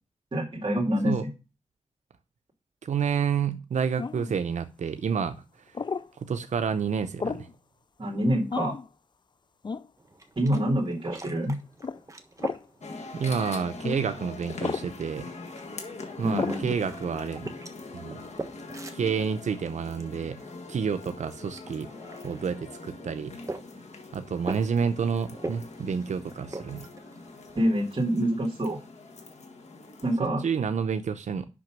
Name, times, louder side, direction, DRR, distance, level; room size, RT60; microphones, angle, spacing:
voice 1, 0.3-1.2 8.0-8.7 10.4-11.6 16.2-16.7 27.6-28.8 30.0-30.4, equal, 45° right, 2.2 m, -26 dB
voice 2, 2.8-5.4 6.2-7.5 13.1-15.3 16.2-17.5 17.9-18.2 18.9-20.4 20.7-21.9 22.2-23.3 24.1-26.9 30.2-31.5, right 6 dB, 90° right, 0.6 m, -29 dB
sound 1, 4.0-4.3 5.7-6.1 7.2-7.5 8.5-8.9 9.6-9.9 10.5-10.7 11.8-12.0 12.4-12.6 13.8-14.0 14.6-14.9 16.3-16.6, left 5 dB, 40° left, 0.4 m, -32 dB
sound 2, 10.0-27.8, right 2 dB, 25° right, 1.3 m, -44 dB
sound 3, 12.8-30.2, left 3 dB, 70° left, 1.6 m, -43 dB
6.1 x 6.0 x 5.9 m
wide cardioid pair, 75°, 12 cm